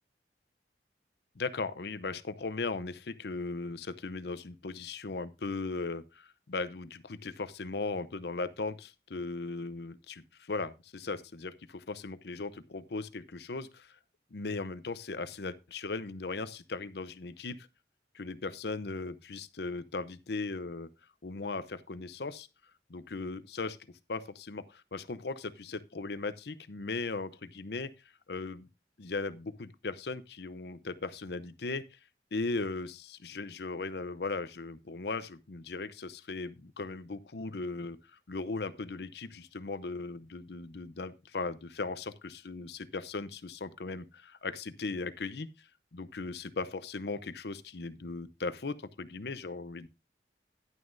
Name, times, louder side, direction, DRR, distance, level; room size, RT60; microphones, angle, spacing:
voice 1, 1.4-13.9 14.3-17.7 18.1-20.9 21.2-22.5 22.9-23.8 24.1-27.9 28.3-28.7 29.0-31.8 32.3-38.0 38.3-45.5 45.9-49.9, left 3 dB, 65° left, 0.7 m, -38 dB
11.0 x 9.5 x 2.6 m
head